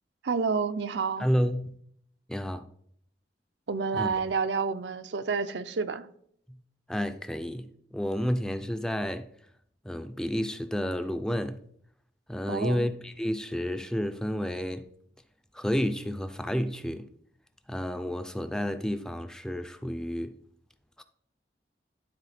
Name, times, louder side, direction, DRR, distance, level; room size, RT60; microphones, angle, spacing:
voice 1, 0.2-1.3 3.7-6.1 12.5-12.9, right 5 dB, 80° right, 0.5 m, -29 dB
voice 2, 1.2-1.8 2.3-2.7 3.9-4.2 6.5-6.6 6.9-9.3 9.8-11.6 12.3-14.8 15.5-17.1 17.7-20.3 21.0-21.1, equal, 5° left, 0.4 m, -30 dB
12.0 x 3.9 x 4.2 m
head